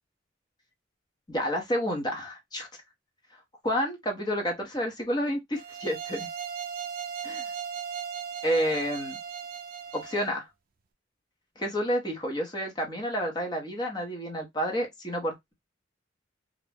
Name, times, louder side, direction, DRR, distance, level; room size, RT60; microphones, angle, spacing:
voice 1, 1.3-2.7 3.6-6.3 7.2-7.5 8.4-9.2 9.9-10.5 11.6-15.5, equal, 20° left, 0.8 m, -30 dB
sound 1, 5.5-10.3, right 7 dB, 45° right, 0.4 m, -37 dB
2.5 x 2.1 x 3.3 m
head